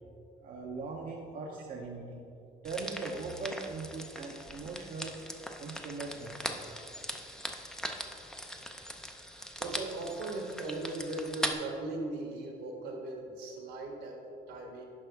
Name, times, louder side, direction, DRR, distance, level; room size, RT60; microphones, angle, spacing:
voice 1, 0.4-2.2 2.6-5.2 5.6-6.8 9.3-9.5, right 3 dB, 55° right, -1 dB, 0.8 m, -40 dB
sound 1, 2.6-11.5, equal, 5° left, 0.6 m, -40 dB
voice 2, 9.6-14.9, right 2 dB, 80° right, 1 dB, 1.5 m, -38 dB
9.8 x 5.6 x 3.5 m, 2.6 s
cardioid pair, 110°, 17 cm